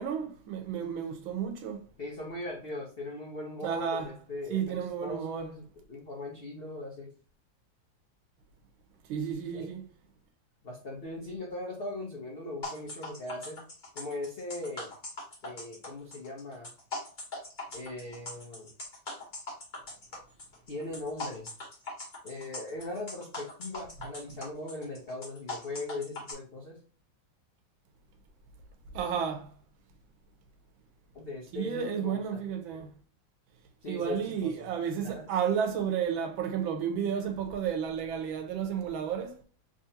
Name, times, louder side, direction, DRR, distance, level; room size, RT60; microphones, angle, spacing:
voice 1, 0.0-1.9 3.6-4.1 4.5-5.5 9.1-9.9 28.9-29.5 31.5-32.9 33.9-39.4, right 7 dB, 80° right, 1.5 m, -32 dB
voice 2, 2.0-7.1 9.5-9.7 10.6-13.6 13.9-14.9 15.4-16.7 17.7-18.7 20.7-21.5 22.2-26.8 31.1-32.4 33.8-34.7 35.0-35.3, left 2 dB, 60° left, 0.6 m, -39 dB
sound 1, 12.6-26.3, left 2 dB, 30° left, 1.0 m, -41 dB
3.7 x 3.2 x 2.7 m
omnidirectional pair, 2.2 m